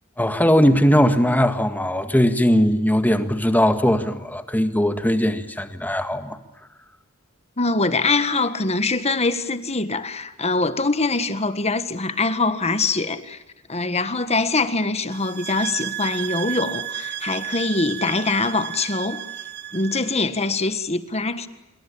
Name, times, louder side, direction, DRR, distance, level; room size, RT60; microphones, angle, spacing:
voice 1, 0.2-6.4, equal, 10° left, 1.9 m, -19 dB
voice 2, 7.6-13.4 13.7-19.2 19.7-21.5, left 3 dB, 30° left, 1.5 m, -23 dB
sound 1, 15.1-20.2, right 12 dB, 50° right, 1.4 m, -32 dB
27.5 x 23.5 x 8.6 m
head